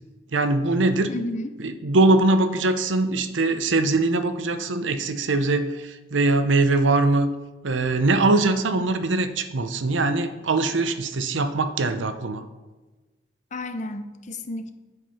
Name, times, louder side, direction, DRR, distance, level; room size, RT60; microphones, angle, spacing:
voice 1, 0.3-1.1 1.6-7.3 7.6-12.4, right 2 dB, 85° right, 10 dB, 0.8 m, -22 dB
voice 2, 1.1-1.6 13.5-14.7, left 1 dB, 40° left, 9 dB, 0.7 m, -32 dB
8.0 x 7.3 x 5.7 m, 1.2 s
head